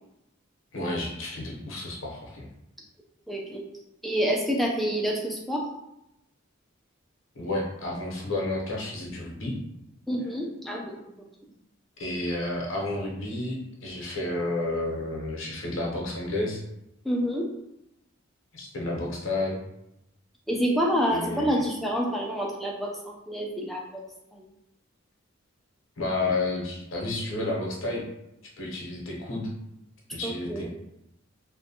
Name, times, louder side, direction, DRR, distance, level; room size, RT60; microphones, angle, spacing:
voice 1, 0.7-2.5 7.3-9.5 12.0-16.6 18.5-19.6 21.1-21.6 26.0-28.0 28.6-29.5 30.1-30.7, left 2 dB, 70° left, -2 dB, 0.7 m, -31 dB
voice 2, 3.3-3.6 4.0-5.6 10.1-10.9 17.0-17.5 20.5-24.0 24.4-24.5 30.2-30.7, equal, ahead, -1 dB, 0.3 m, -27 dB
2.5 x 2.1 x 2.7 m, 0.85 s
head